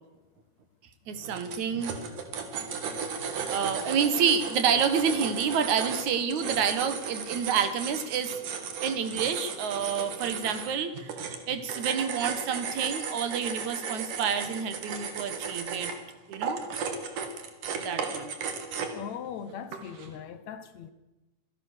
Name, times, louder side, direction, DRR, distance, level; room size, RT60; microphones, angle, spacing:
voice 1, 1.1-1.9 3.5-8.4 8.8-11.1 11.5-15.9 16.3-16.6 17.8-18.3, right 7 dB, 70° right, 2.8 m, -28 dB
sound 1, 1.1-19.1 19.7-20.1, right 6 dB, 85° right, 3.7 m, -35 dB
voice 2, 18.9-20.9, left 8 dB, 70° left, 2.2 m, -39 dB
26.5 x 17.0 x 6.6 m
omnidirectional pair, 3.6 m